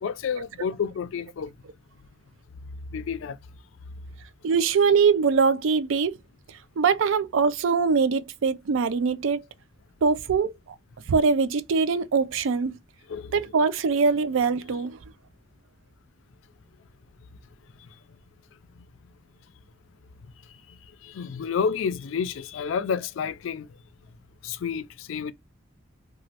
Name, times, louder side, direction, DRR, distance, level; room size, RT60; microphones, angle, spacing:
voice 1, 0.0-1.5 2.9-3.4 13.1-13.5 20.7-23.7 24.4-25.3, left 6 dB, 85° left, 0.4 m, -30 dB
voice 2, 4.4-6.2 6.5-9.4 10.0-10.5 11.1-12.8 13.3-15.0, right 5 dB, 85° right, 0.4 m, -22 dB
3.0 x 2.4 x 2.8 m
head